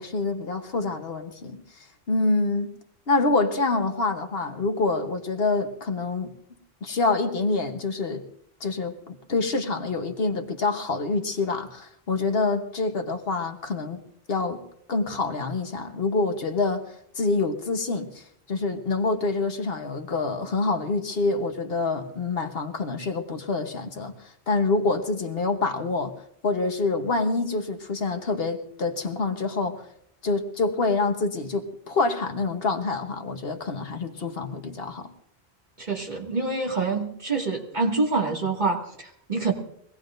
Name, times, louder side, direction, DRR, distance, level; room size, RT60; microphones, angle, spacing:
voice 1, 0.0-1.6 2.1-2.7 3.1-6.3 6.8-8.2 8.6-14.0 14.3-14.6 14.9-16.8 17.1-26.1 26.4-29.8 30.2-35.1, left 3 dB, 65° left, 5 dB, 1.4 m, -26 dB
voice 2, 35.8-39.5, right 3 dB, 45° right, -1 dB, 2.3 m, -26 dB
23.5 x 17.5 x 2.6 m, 0.70 s
omnidirectional pair, 1.1 m